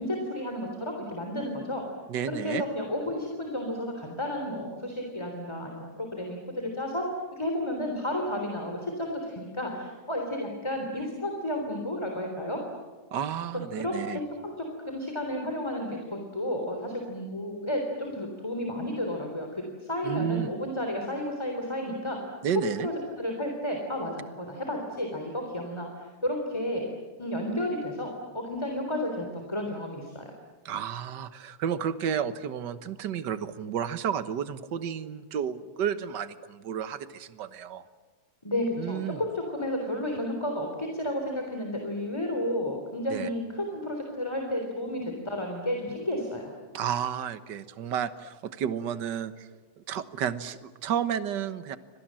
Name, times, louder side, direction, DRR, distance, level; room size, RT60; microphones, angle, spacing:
voice 1, 0.0-1.8 2.3-12.6 13.7-14.5 14.9-22.3 22.5-26.9 27.2-30.3 38.4-46.5, left 1 dB, 10° left, 2 dB, 3.3 m, -32 dB
voice 2, 2.1-2.6 13.1-14.2 20.0-20.5 22.4-22.9 30.6-37.8 38.8-39.2 43.1-43.3 46.7-49.5 49.9-51.8, right 8 dB, 55° right, 12 dB, 1.3 m, -31 dB
29.5 x 25.5 x 7.7 m, 1.4 s
omnidirectional pair, 3.3 m